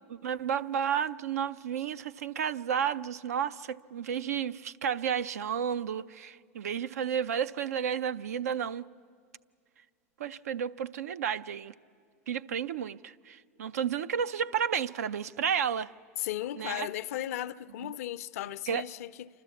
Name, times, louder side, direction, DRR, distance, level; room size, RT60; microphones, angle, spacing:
voice 1, 0.1-8.9 10.2-11.7 12.3-15.9 16.6-16.9 17.8-18.0 18.7-18.8, right 8 dB, 85° right, 0.5 m, -32 dB
voice 2, 16.2-19.3, left 13 dB, 70° left, 0.5 m, -36 dB
28.0 x 12.5 x 8.4 m
hypercardioid pair, 100°, 8 cm